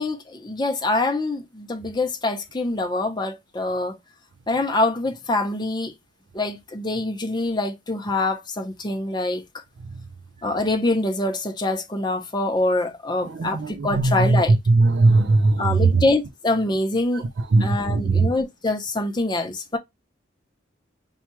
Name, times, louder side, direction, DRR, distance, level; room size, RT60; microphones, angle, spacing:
voice 1, 0.0-4.0 4.5-5.9 6.3-9.4 10.4-14.5 15.6-17.2 17.6-19.8, left 2 dB, 20° left, 0.7 m, -25 dB
voice 2, 13.2-16.0 17.5-18.3, right 3 dB, 70° right, 0.5 m, -19 dB
5.5 x 2.3 x 2.9 m
head